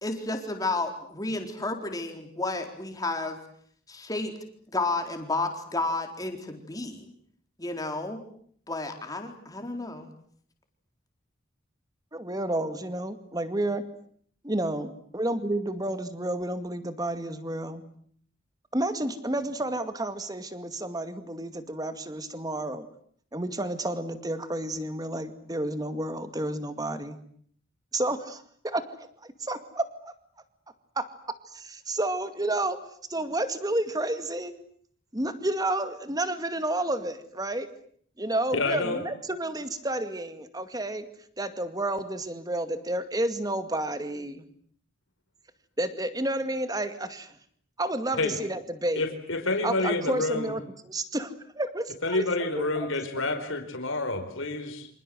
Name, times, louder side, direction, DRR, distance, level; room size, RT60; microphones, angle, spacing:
voice 1, 0.0-3.4 3.9-4.3 4.7-7.1 7.6-8.2 8.7-10.1, left 2 dB, 20° left, 5 dB, 4.2 m, -31 dB
voice 2, 12.1-13.8 14.4-17.8 18.7-22.9 23.3-27.2 27.9-28.8 29.2-29.8 31.0-31.1 31.6-32.8 33.1-34.5 35.1-37.7 38.2-41.1 41.4-44.4 45.8-47.4 47.8-49.0 49.6-52.3 52.6-52.9 53.3-53.4, right 1 dB, 20° right, 10 dB, 2.2 m, -30 dB
voice 3, 38.5-39.0 48.2-48.4 48.9-50.5 52.0-54.9, left 2 dB, 85° left, 5 dB, 4.6 m, -28 dB
28.0 x 26.5 x 7.9 m, 0.62 s
head